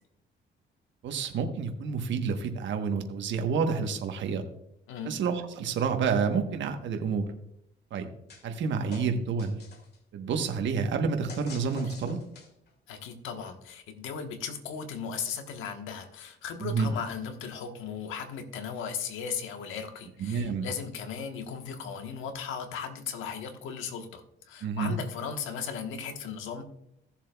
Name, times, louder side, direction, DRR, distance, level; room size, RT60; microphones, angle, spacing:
voice 1, 1.0-4.4 5.0-7.2 7.9-8.1 8.4-9.6 10.1-12.2 16.6-16.9 20.2-20.7 24.6-25.0, right 5 dB, 70° right, 5 dB, 1.1 m, -29 dB
sound 1, 8.3-8.6 8.9-10.0 11.3-12.7, left 4 dB, 55° left, 2.0 m, -47 dB
voice 2, 12.9-26.6, left 6 dB, 85° left, 6 dB, 1.3 m, -37 dB
16.0 x 7.2 x 2.3 m, 0.75 s
cardioid pair, 90°, 20 cm